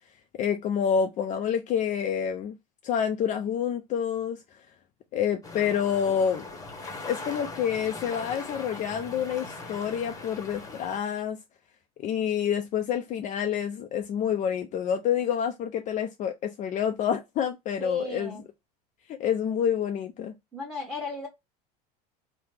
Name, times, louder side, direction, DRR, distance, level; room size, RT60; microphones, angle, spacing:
voice 1, 0.4-2.6 2.8-4.4 5.1-6.4 7.1-11.4 12.0-18.4 19.1-20.3, left 8 dB, 40° left, 0.4 m, -28 dB
sound 1, 5.4-11.0, left 3 dB, 15° left, 1.0 m, -40 dB
voice 2, 17.8-18.4 20.5-21.3, left 1 dB, 5° right, 1.2 m, -35 dB
3.0 x 2.1 x 3.3 m
hypercardioid pair, 90°, 20 cm